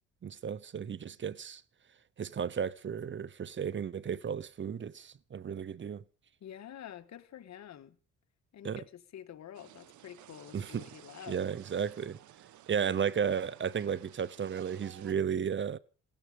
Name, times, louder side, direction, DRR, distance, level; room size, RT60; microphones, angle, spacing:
voice 1, 0.2-1.6 2.2-6.0 8.6-8.8 10.5-10.8 11.3-12.2 12.7-15.8, right 7 dB, 40° right, 0.8 m, -34 dB
voice 2, 6.4-8.0 8.5-11.5, left 10 dB, 65° left, 1.7 m, -48 dB
sound 1, 9.5-15.1, right 12 dB, 75° right, 1.1 m, -55 dB
18.0 x 14.5 x 5.2 m
cardioid pair, 90°, 30 cm